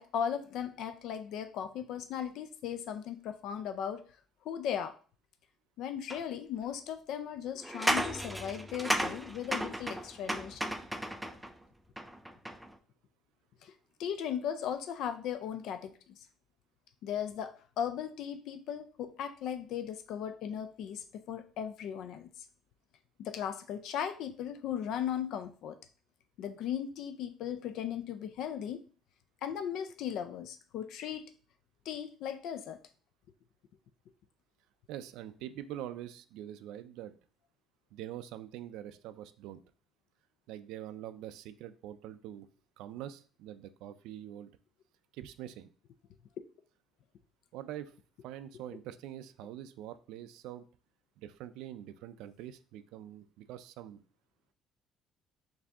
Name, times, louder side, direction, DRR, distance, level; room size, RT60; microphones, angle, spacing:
voice 1, 0.0-4.0 4.5-5.0 5.8-10.7 13.6-13.7 14.0-16.0 17.0-22.3 23.2-25.8 26.4-28.8 29.4-31.3 31.9-32.8, left 9 dB, 70° left, 9 dB, 0.3 m, -37 dB
sound 1, 6.1-6.2 7.6-11.5 12.0-12.7, right 1 dB, 5° right, 0.3 m, -34 dB
voice 2, 34.9-37.2 37.9-39.6 40.5-42.5 42.8-44.5 45.1-45.7 47.5-47.9 48.2-50.7 51.2-54.0, right 12 dB, 85° right, 12 dB, 0.3 m, -44 dB
4.8 x 2.7 x 3.4 m, 0.41 s
cardioid pair, 130°, 0 cm